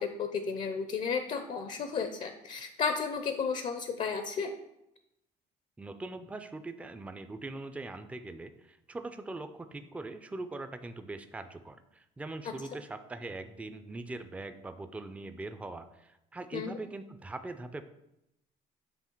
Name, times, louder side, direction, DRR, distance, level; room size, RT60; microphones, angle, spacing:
voice 1, 0.0-4.5 16.5-16.7, left 5 dB, 45° left, 7 dB, 0.5 m, -33 dB
voice 2, 5.8-17.8, right 2 dB, 10° right, 9 dB, 0.4 m, -42 dB
7.1 x 3.4 x 4.4 m, 0.86 s
cardioid pair, 110°, 17 cm